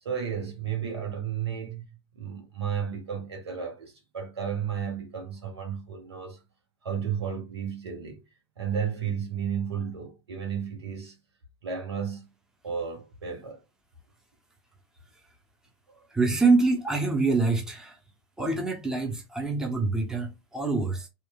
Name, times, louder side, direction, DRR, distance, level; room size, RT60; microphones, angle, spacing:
voice 1, 0.0-1.8 2.1-6.4 6.8-8.2 8.6-11.2 11.6-12.3 12.6-13.6 15.9-16.1, right 7 dB, 75° right, 0.9 m, -33 dB
voice 2, 16.1-18.0 18.4-21.1, right 3 dB, 5° right, 0.7 m, -25 dB
2.9 x 2.3 x 2.2 m
figure-of-eight pair, 90°, 14 cm